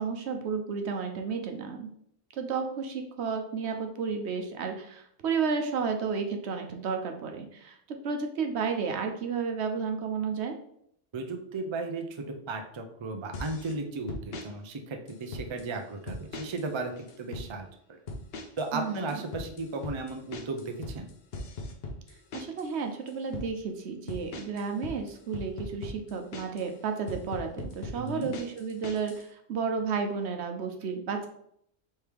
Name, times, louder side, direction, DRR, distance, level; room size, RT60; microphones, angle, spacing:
voice 1, 0.0-1.9 2.3-7.8 8.0-10.5 18.7-19.2 22.3-31.3, right 5 dB, 75° right, 5 dB, 1.0 m, -32 dB
voice 2, 11.1-16.9 17.2-18.0 18.6-21.1 27.9-28.3, right 3 dB, 40° right, 4 dB, 0.4 m, -35 dB
sound 1, 13.3-13.8 14.1-14.5 15.1-15.7 16.1-16.7 17.0-17.5 18.1-18.7 18.9-22.7 23.1-23.5 24.1-26.7 27.1-29.2, left 2 dB, 65° left, 0.9 m, -39 dB
4.7 x 3.3 x 3.4 m, 0.70 s
omnidirectional pair, 1.2 m